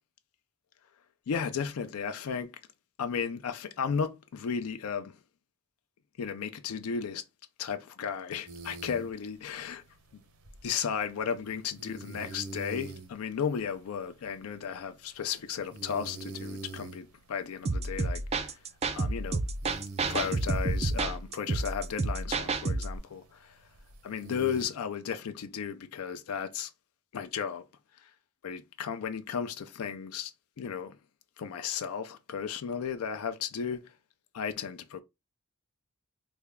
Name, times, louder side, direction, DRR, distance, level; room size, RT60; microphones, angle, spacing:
voice 1, 1.3-2.6 3.0-5.2 6.2-7.2 7.6-9.8 10.1-10.2 10.6-19.4 20.1-23.7 24.0-26.7 27.1-27.6 27.9-28.1 28.4-31.0 31.4-33.9 34.3-35.0, left 7 dB, 80° left, 0.4 m, -34 dB
sound 1, 8.5-24.6, right 3 dB, 80° right, 0.8 m, -47 dB
sound 2, 17.6-23.0, right 3 dB, 30° right, 0.4 m, -30 dB
3.4 x 2.2 x 3.4 m
head